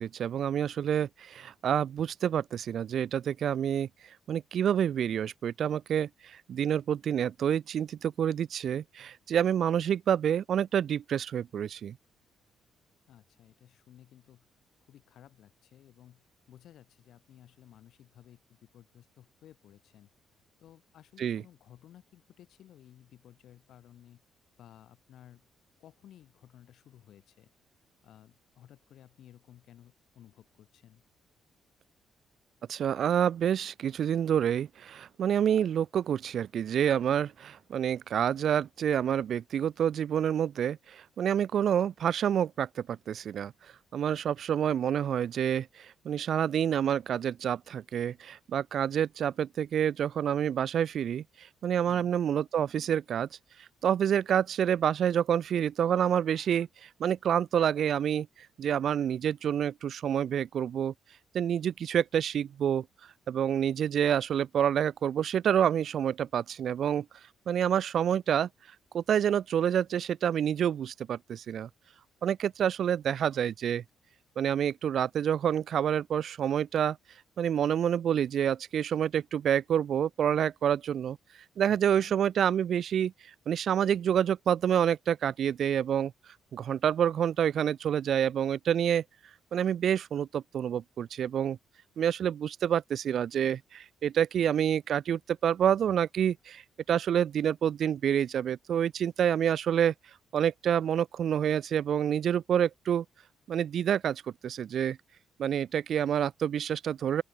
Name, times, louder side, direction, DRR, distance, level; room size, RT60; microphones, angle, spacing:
voice 1, 0.0-3.9 4.3-12.0 21.2-21.4 32.7-43.5 43.9-51.2 51.6-53.3 53.8-58.3 58.6-60.9 61.3-62.8 63.3-67.1 67.5-68.5 68.9-71.7 72.2-73.8 74.4-77.0 77.4-81.2 81.6-83.1 83.5-86.1 86.5-89.0 89.5-91.6 92.0-96.6 96.9-99.9 100.3-103.0 103.5-105.0 105.4-107.2, right 9 dB, 65° right, 0.6 m, -28 dB
voice 2, 13.1-14.5 14.9-20.1 20.6-24.2 24.6-25.5 25.8-27.5 28.0-31.0 51.8-52.2 81.6-82.2, left 11 dB, 75° left, 7.2 m, -56 dB
open air
cardioid pair, 90°, 0 cm